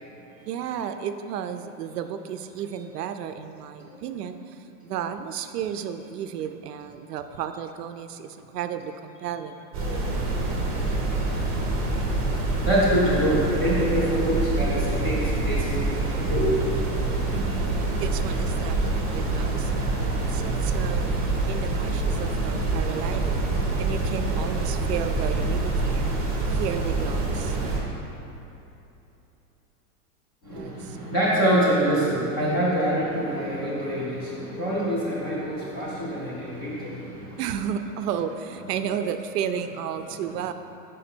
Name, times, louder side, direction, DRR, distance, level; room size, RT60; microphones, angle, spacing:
voice 1, 0.5-9.7 17.3-23.4 23.7-27.6 30.5-31.1 32.6-32.8 37.4-40.5, right 8 dB, 85° right, 9 dB, 0.5 m, -33 dB
sound 1, 9.7-27.8, right 2 dB, 25° right, 0.6 m, -26 dB
voice 2, 10.6-11.0 12.1-12.3 12.6-16.5 30.4-37.4, equal, 15° left, -8 dB, 0.5 m, -25 dB
5.1 x 4.9 x 4.4 m, 2.9 s
supercardioid pair, 175°, 47 cm